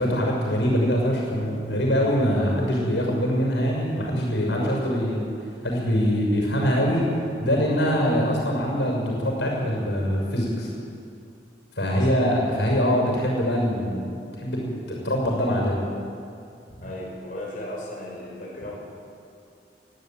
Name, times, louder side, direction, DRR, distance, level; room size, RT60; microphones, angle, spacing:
voice 1, 0.0-5.2 5.6-7.1 7.4-10.7 11.8-15.8, equal, 85° left, -1 dB, 6.6 m, -23 dB
voice 2, 4.4-5.0 7.8-8.1 11.9-12.4 16.8-18.7, left 1 dB, 50° left, -4 dB, 5.5 m, -36 dB
21.5 x 13.5 x 9.3 m, 2.4 s
head